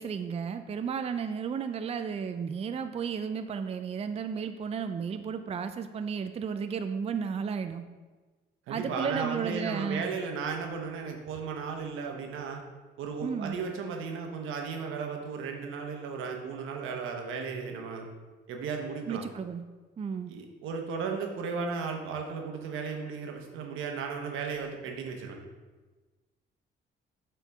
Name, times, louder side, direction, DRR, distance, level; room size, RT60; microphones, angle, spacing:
voice 1, 0.0-7.8 8.7-10.1 13.2-13.6 19.1-19.6 20.0-20.3, right 6 dB, 30° right, 8 dB, 0.4 m, -33 dB
voice 2, 8.7-12.6 13.0-18.1 18.5-19.2 20.3-25.4, right 5 dB, 90° right, 3 dB, 1.0 m, -35 dB
7.7 x 4.5 x 3.5 m, 1.3 s
cardioid pair, 90°, 20 cm